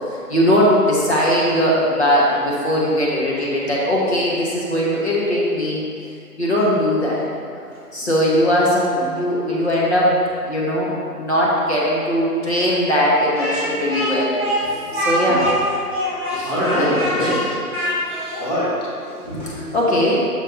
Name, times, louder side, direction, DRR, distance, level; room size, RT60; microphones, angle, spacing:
voice 1, 0.3-5.8 6.4-7.2 7.9-14.6 14.9-15.6 16.3-17.4 19.4-20.2, equal, 45° left, -5 dB, 1.4 m, -19 dB
Speech, 13.3-18.4, equal, 5° left, 1.4 m, -24 dB
voice 2, 16.2-17.4 18.4-20.0, equal, 25° left, -10 dB, 1.3 m, -24 dB
8.7 x 6.6 x 2.7 m, 2.6 s
figure-of-eight pair, 160°, 47 cm